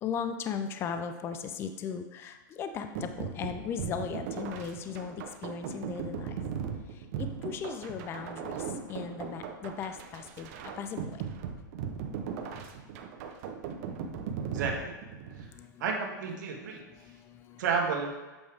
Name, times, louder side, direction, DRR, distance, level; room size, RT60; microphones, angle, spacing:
voice 1, 0.0-6.3 7.2-10.5 10.8-11.2 15.5-15.8 17.0-17.6, left 7 dB, 20° left, 8 dB, 0.4 m, -37 dB
sound 1, 2.9-15.5, right 7 dB, 50° right, 0.8 m, -38 dB
voice 2, 14.4-14.9 15.4-15.5 15.8-16.8 17.6-18.2, right 5 dB, 65° right, 1 dB, 1.4 m, -31 dB
7.9 x 4.6 x 3.5 m, 1.2 s
hypercardioid pair, 140°, 11 cm